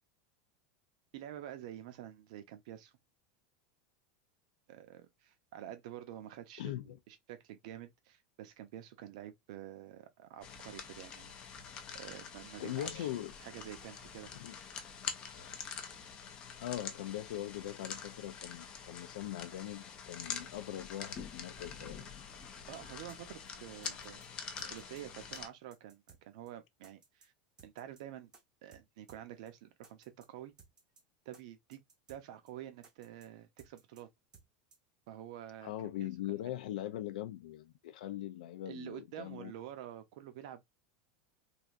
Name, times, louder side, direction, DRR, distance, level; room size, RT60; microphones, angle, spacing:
voice 1, 1.1-2.9 4.7-11.3 11.9-13.1 13.4-14.3 22.7-24.2 24.6-27.3 27.6-28.3 28.6-30.5 31.3-31.8 32.1-34.1 35.1-36.1 38.7-40.7, right 12 dB, 55° right, 0.6 m, -48 dB
voice 2, 6.6-7.0 12.6-13.3 14.3-14.5 15.3-15.6 16.6-22.0 24.6-24.7 35.6-39.5, left 13 dB, 80° left, 0.4 m, -41 dB
sound 1, 10.4-25.5, left 6 dB, 20° left, 0.4 m, -46 dB
sound 2, 23.1-23.2 23.5-23.6 23.8-24.3 24.6-25.0 25.3-25.4 25.7-26.2 26.5-26.6 26.8-27.3 27.6-28.0 28.3-28.4 28.7-28.8 29.1-29.2 29.5-29.6 29.8-30.3 30.6-31.0 31.3-31.4 31.7-32.2 32.5-32.6 32.8-33.3 33.6-34.0 34.3-34.5 34.7-34.8, right 5 dB, 15° right, 0.6 m, -60 dB
3.3 x 2.7 x 2.5 m
supercardioid pair, 180°, 4 cm